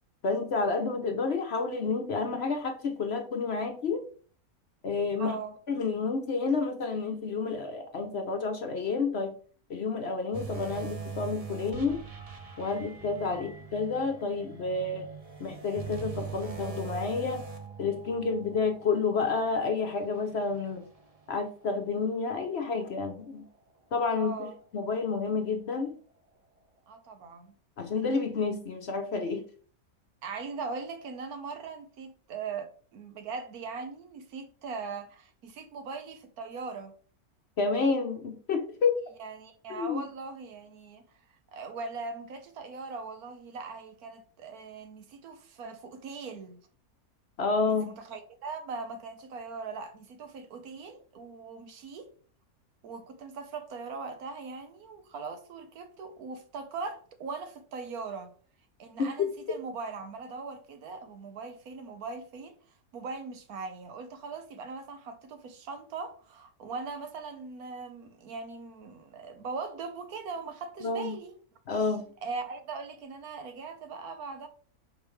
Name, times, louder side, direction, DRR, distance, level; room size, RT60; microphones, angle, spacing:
voice 1, 0.2-4.0 4.8-5.4 5.7-9.3 9.7-12.0 12.6-15.1 15.4-17.4 17.8-20.9 21.3-23.4 23.9-25.9 27.8-29.4 37.6-39.0 39.7-40.0 47.4-47.9 59.0-59.3 70.8-71.1 71.7-72.1, left 4 dB, 55° left, 0.8 m, -30 dB
voice 2, 5.2-5.6 13.3-13.5 24.1-24.6 26.9-27.6 30.2-36.9 39.2-46.6 47.7-52.1 52.8-58.3 58.8-62.6 62.9-71.3 72.2-74.5, right 4 dB, 80° right, 1.4 m, -40 dB
sound 1, 10.3-21.8 22.2-22.4 23.0-23.1, right 5 dB, 35° right, 0.7 m, -42 dB
6.2 x 5.2 x 3.1 m
omnidirectional pair, 1.6 m